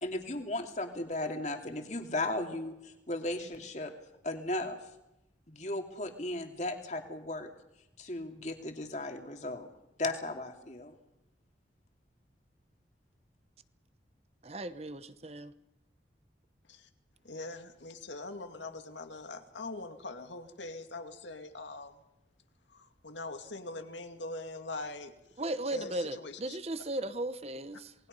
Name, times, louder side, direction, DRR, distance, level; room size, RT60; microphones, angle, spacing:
voice 1, 0.0-3.9 4.2-4.8 5.5-7.5 8.0-9.7 10.0-10.9, left 2 dB, 40° left, 2.7 m, -36 dB
voice 2, 14.4-15.5 25.4-27.9, right 1 dB, 35° right, 0.9 m, -36 dB
voice 3, 17.2-22.0 22.7-25.1 25.7-26.6, left 2 dB, 85° left, 2.4 m, -42 dB
27.5 x 20.0 x 5.4 m
head